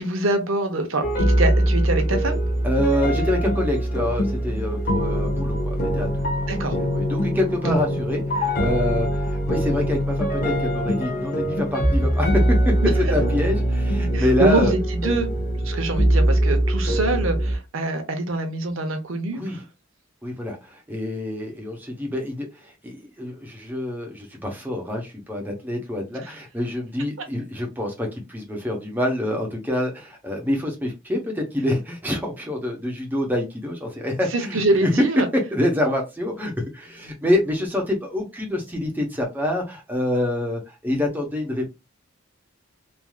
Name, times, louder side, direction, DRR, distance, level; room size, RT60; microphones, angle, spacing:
voice 1, 0.0-2.4 6.5-6.8 7.6-7.8 12.8-12.9 14.1-15.3 15.6-19.4 34.3-35.3, right 2 dB, 75° right, 0.8 m, -24 dB
sound 1, 1.0-17.6, equal, 45° left, 1.0 m, -22 dB
voice 2, 2.6-6.5 6.9-14.7 19.3-19.6 20.2-34.9 35.5-41.7, left 1 dB, 10° right, 0.8 m, -26 dB
3.2 x 2.6 x 2.3 m
head